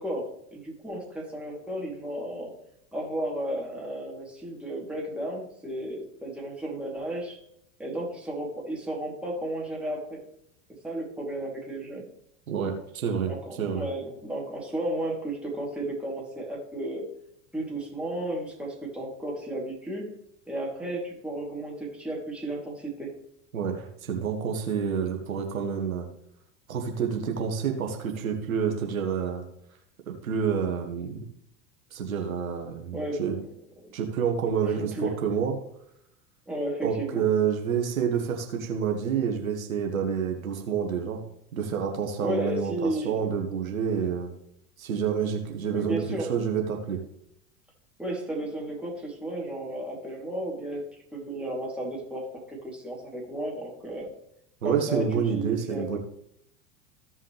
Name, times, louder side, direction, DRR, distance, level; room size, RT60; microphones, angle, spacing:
voice 1, 0.0-2.5 2.9-7.4 7.8-10.2 10.8-12.1 13.3-17.0 17.5-20.1 20.5-23.1 32.9-33.2 34.6-35.2 36.5-37.2 42.2-43.2 45.7-46.3 48.0-54.1 54.6-56.0, right 1 dB, 5° right, -3 dB, 3.1 m, -33 dB
voice 2, 12.5-13.3 13.6-13.9 23.5-26.1 26.7-29.4 30.1-31.2 31.9-33.4 33.9-35.5 36.8-41.2 41.5-44.3 44.8-47.0 54.6-56.0, right 7 dB, 80° right, 2 dB, 1.5 m, -28 dB
15.5 x 5.5 x 3.4 m, 0.74 s
hypercardioid pair, 85°, 40 cm